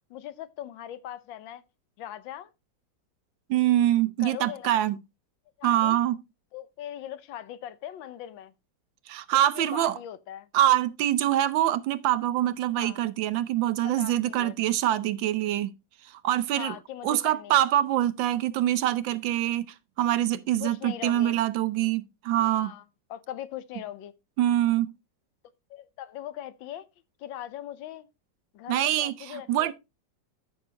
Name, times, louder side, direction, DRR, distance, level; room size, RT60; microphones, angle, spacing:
voice 1, 0.1-1.6 2.0-2.5 4.2-4.8 5.6-6.0 6.5-8.5 9.3-10.5 12.8-13.0 13.8-14.6 16.5-17.6 20.6-21.4 22.5-22.8 23.1-24.1 25.7-26.9 27.2-28.1 28.5-29.7, left 11 dB, 85° left, 1.5 m, -40 dB
voice 2, 3.5-5.0 5.6-6.2 9.1-9.9 10.5-15.7 16.2-16.7 17.0-22.7 24.4-24.9 28.7-29.1 29.5-29.7, right 13 dB, 85° right, 1.4 m, -24 dB
13.0 x 6.0 x 2.8 m
omnidirectional pair, 2.0 m